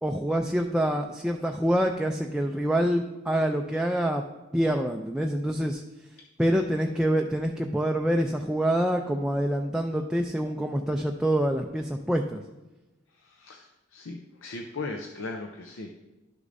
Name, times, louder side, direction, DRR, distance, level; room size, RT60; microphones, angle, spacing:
voice 1, 0.0-4.2 4.5-5.8 6.4-12.4, right 1 dB, 5° right, 2 dB, 0.3 m, -26 dB
voice 2, 13.2-15.9, left 3 dB, 80° left, 2 dB, 0.6 m, -38 dB
11.5 x 6.5 x 2.6 m, 1.1 s
head